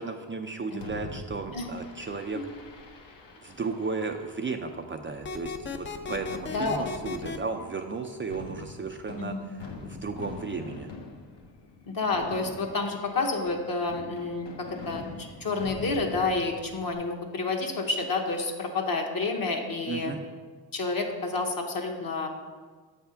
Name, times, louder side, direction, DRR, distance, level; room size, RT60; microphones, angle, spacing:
voice 1, 0.0-2.4 3.4-10.9 19.9-20.2, right 4 dB, 30° right, 4 dB, 0.4 m, -34 dB
Fireworks, 0.8-16.9, left 3 dB, 65° left, 1.0 m, -45 dB
sound 1, 5.2-7.4, left 4 dB, 25° left, 0.5 m, -35 dB
voice 2, 6.5-6.9 9.2-9.5 11.8-20.1 20.7-22.3, left 3 dB, 50° left, 2 dB, 1.1 m, -29 dB
7.3 x 3.4 x 5.6 m, 1.5 s
cardioid pair, 65°, 45 cm